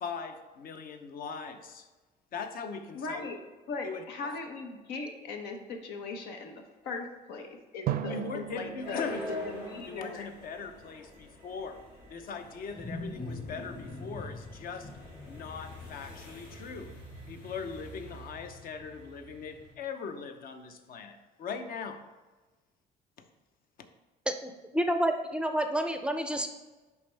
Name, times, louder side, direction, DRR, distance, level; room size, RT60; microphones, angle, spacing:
voice 1, 0.0-1.9 2.3-3.3 3.8-4.0 8.1-9.4 9.9-11.8 12.1-14.9 15.3-16.9 17.3-22.0, left 5 dB, 60° left, 7 dB, 0.7 m, -40 dB
voice 2, 2.9-3.4 3.7-9.1 9.5-10.3, left 3 dB, 90° left, 4 dB, 0.9 m, -39 dB
Drum, 7.9-10.8, right 10 dB, 65° right, 0.5 m, -38 dB
sound 1, 8.2-19.7, left 2 dB, 75° left, 2.2 m, -46 dB
Wild animals, 11.8-16.8, left 2 dB, 25° left, 1.1 m, -43 dB
voice 3, 24.3-26.5, right 1 dB, 5° right, 6 dB, 0.5 m, -29 dB
10.5 x 3.6 x 3.3 m, 1.2 s
cardioid pair, 110°, 17 cm